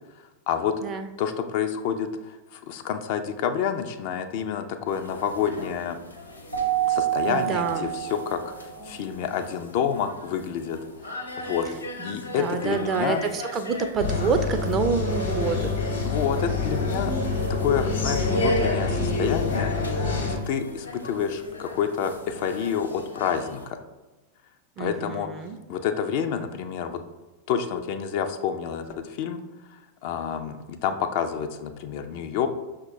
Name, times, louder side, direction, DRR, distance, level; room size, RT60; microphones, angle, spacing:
voice 1, 1.2-6.0 6.9-10.8 11.4-11.7 12.0-13.2 16.0-17.1 17.5-23.8 24.8-25.3 25.7-27.0 27.5-29.4 30.0-32.5, left 8 dB, 50° left, 7 dB, 0.3 m, -28 dB
sound 1, 4.9-23.7, left 2 dB, 85° left, 0.7 m, -42 dB
Keyboard (musical), 6.5-8.8, right 13 dB, 90° right, 0.7 m, -27 dB
voice 2, 7.3-7.9 12.1-15.7 24.8-25.6, right 5 dB, 30° right, 8 dB, 0.3 m, -27 dB
sound 2, 14.0-20.4, left 3 dB, 65° left, 0.9 m, -26 dB
5.8 x 2.2 x 3.0 m, 1.1 s
figure-of-eight pair, 90°, 0 cm